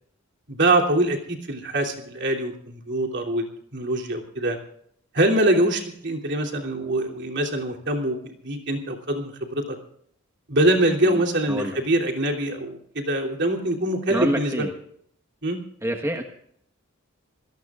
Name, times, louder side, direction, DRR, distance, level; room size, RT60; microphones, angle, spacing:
voice 1, 0.5-3.5 3.7-4.6 5.1-9.8 10.5-14.7 15.4-15.6, right 1 dB, 55° right, 1 dB, 3.1 m, -24 dB
voice 2, 11.0-11.8 14.1-14.7 15.8-16.2, equal, 10° right, 2 dB, 1.3 m, -27 dB
26.5 x 18.5 x 2.5 m, 0.67 s
head